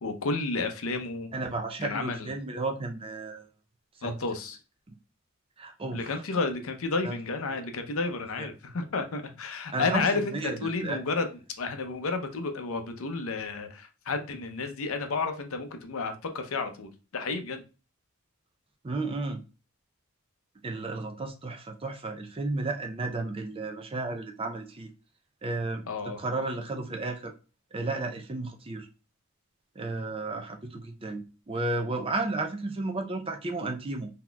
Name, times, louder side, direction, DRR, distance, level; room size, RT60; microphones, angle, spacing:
voice 1, 0.0-1.3 1.8-2.3 4.0-4.6 5.9-11.3 11.6-17.6 25.9-26.2, left 3 dB, 65° left, 0.6 m, -31 dB
voice 2, 1.3-3.5 4.0-4.2 5.6-6.1 7.0-7.2 9.7-11.0 18.8-19.4 20.6-24.9 25.4-27.3 27.7-28.9 29.8-34.1, right 2 dB, 25° right, 0.5 m, -33 dB
3.9 x 2.8 x 2.2 m
head